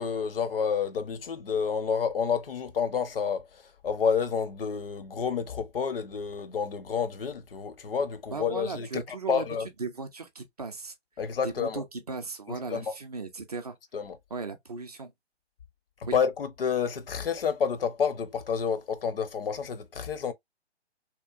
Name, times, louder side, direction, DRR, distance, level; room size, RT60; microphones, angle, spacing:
voice 1, 0.0-9.7 11.2-11.8 12.7-12.9 13.9-14.2 16.1-20.3, left 6 dB, 55° left, 0.5 m, -29 dB
voice 2, 8.3-9.5 9.8-10.9 11.4-13.8 14.3-15.1 16.1-16.2, right 4 dB, 35° right, 0.4 m, -37 dB
2.8 x 2.1 x 2.3 m
figure-of-eight pair, 130°, 34 cm